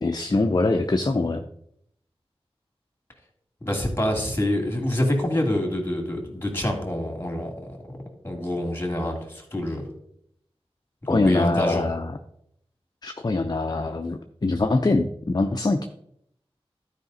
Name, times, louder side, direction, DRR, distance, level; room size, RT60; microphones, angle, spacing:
voice 1, 0.0-1.4 11.1-12.1 13.0-15.8, left 2 dB, 40° left, 6 dB, 0.5 m, -23 dB
voice 2, 3.6-7.5 7.9-8.0 8.2-9.8 11.1-11.9, left 1 dB, 20° left, 2 dB, 2.4 m, -26 dB
12.0 x 5.0 x 4.0 m, 0.73 s
wide cardioid pair, 60°, 10 cm